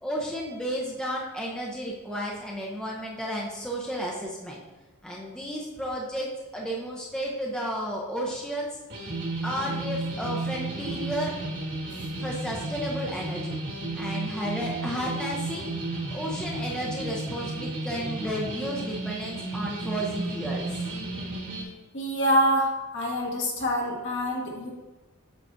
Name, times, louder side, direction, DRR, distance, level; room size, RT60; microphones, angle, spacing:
voice 1, 0.0-4.6 5.0-8.7 9.4-11.4 12.2-13.6 14.0-20.8, equal, 5° left, -3 dB, 0.7 m, -33 dB
sound 1, 8.9-21.6, right 2 dB, 55° right, 1.6 m, -33 dB
voice 2, 21.9-24.7, equal, 55° left, -2 dB, 1.5 m, -26 dB
8.3 x 5.7 x 2.6 m, 1.1 s
head